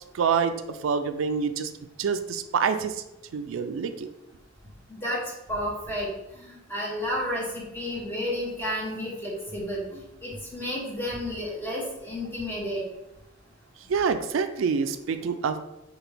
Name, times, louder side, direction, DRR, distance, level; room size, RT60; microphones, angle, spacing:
voice 1, 0.1-1.7 2.0-3.0 3.3-4.1 13.9-15.6, right 6 dB, 80° right, 9 dB, 0.4 m, -26 dB
voice 2, 4.9-12.8, equal, 10° left, -4 dB, 1.2 m, -32 dB
5.8 x 2.4 x 3.4 m, 0.92 s
head